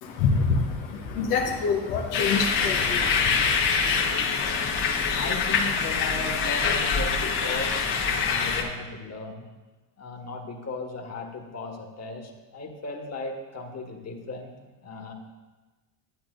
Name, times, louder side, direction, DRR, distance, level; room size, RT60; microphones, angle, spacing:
voice 1, 0.0-3.6, left 4 dB, 85° left, 0 dB, 1.1 m, -26 dB
sound 1, 2.1-8.6, left 5 dB, 60° left, 1.4 m, -25 dB
voice 2, 5.1-9.5 10.0-14.5 14.8-15.1, left 3 dB, 35° left, 2 dB, 1.6 m, -36 dB
10.5 x 8.5 x 2.6 m, 1.2 s
hypercardioid pair, 70°, 48 cm